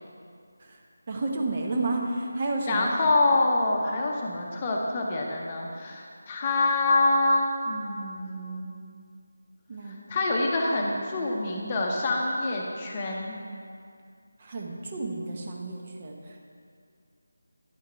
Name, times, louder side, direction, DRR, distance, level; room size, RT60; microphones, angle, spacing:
voice 1, 1.1-2.9 9.7-10.1 14.4-16.4, right 2 dB, 35° right, 0 dB, 1.0 m, -31 dB
voice 2, 2.7-8.7 9.8-13.4, left 2 dB, 25° left, -1 dB, 0.8 m, -26 dB
9.9 x 5.7 x 4.5 m, 2.3 s
figure-of-eight pair, 160°, 0 cm